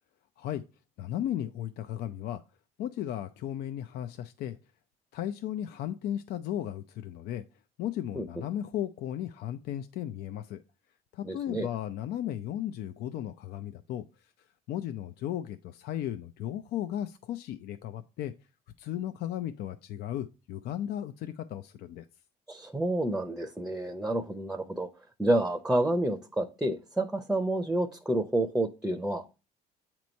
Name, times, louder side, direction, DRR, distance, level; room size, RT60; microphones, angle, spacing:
voice 1, 1.0-2.4 2.8-4.6 5.1-7.4 7.8-10.6 11.1-14.3 14.7-18.3 18.8-22.1, left 11 dB, 70° left, 0.5 m, -35 dB
voice 2, 11.2-11.7 22.5-24.9 25.2-29.4, right 1 dB, 5° right, 0.6 m, -29 dB
8.4 x 3.0 x 5.2 m
cardioid pair, 110°, 17 cm